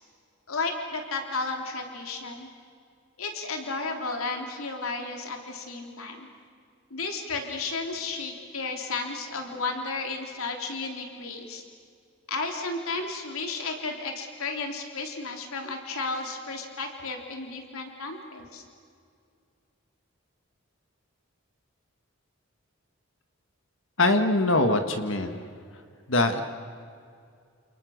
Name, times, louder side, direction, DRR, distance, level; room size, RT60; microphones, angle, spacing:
voice 1, 0.5-2.5 3.2-6.3 6.9-11.6 12.3-18.6, left 3 dB, 80° left, 3 dB, 3.5 m, -33 dB
voice 2, 24.0-25.5 26.1-26.4, left 2 dB, 65° left, 7 dB, 1.8 m, -23 dB
29.5 x 28.5 x 6.6 m, 2.3 s
head